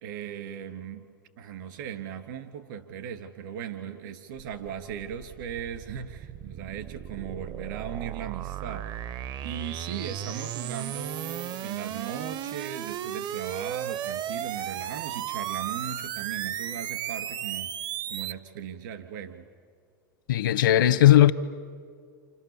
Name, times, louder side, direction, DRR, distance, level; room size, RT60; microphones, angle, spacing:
voice 1, 0.0-1.1 1.4-9.0 9.4-17.7 18.1-19.5, right 8 dB, 70° right, 2.7 m, -38 dB
sound 1, 4.4-18.3, right 11 dB, 40° right, 0.7 m, -35 dB
voice 2, 20.3-21.3, left 12 dB, 75° left, 1.0 m, -17 dB
29.5 x 27.0 x 7.2 m
hypercardioid pair, 100°, 11 cm